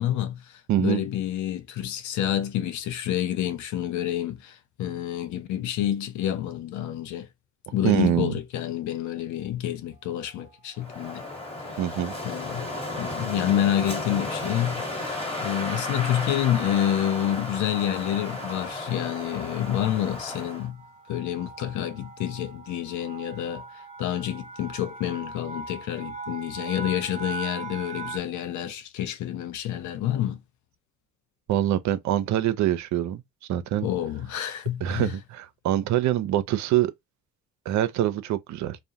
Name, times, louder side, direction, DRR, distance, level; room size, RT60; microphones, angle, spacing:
voice 1, 0.0-7.3 7.7-11.2 12.2-12.7 13.0-20.8 21.1-30.4 33.8-35.1, left 11 dB, 70° left, 0.6 m, -28 dB
voice 2, 0.7-1.0 7.8-8.3 11.8-12.1 31.5-33.2 33.5-33.9 34.8-36.9 37.7-38.8, right 12 dB, 65° right, 0.5 m, -24 dB
sound 1, 10.0-10.5 11.3-11.7 12.0-12.2 12.4-28.2, right 4 dB, 20° right, 0.7 m, -43 dB
Wind, 10.8-20.7, left 2 dB, 20° left, 1.4 m, -33 dB
2.4 x 2.1 x 2.8 m
supercardioid pair, 60°, 31 cm